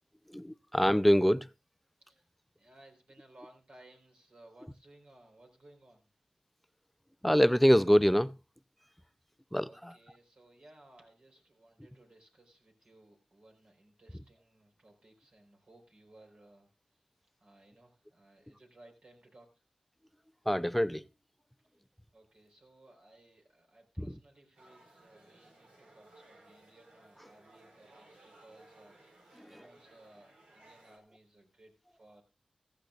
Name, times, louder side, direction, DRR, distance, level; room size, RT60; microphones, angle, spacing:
voice 1, 0.3-1.5 7.2-8.3 9.5-9.9 20.5-21.0 24.0-24.2 29.4-29.6, equal, 5° left, 0.5 m, -25 dB
voice 2, 2.6-6.1 9.6-16.7 17.4-19.6 22.1-29.0 29.5-32.2, right 1 dB, 60° right, 4.6 m, -60 dB
sound 1, 24.5-31.0, right 2 dB, 85° right, 3.6 m, -60 dB
15.5 x 14.0 x 2.5 m
cardioid pair, 50°, 2 cm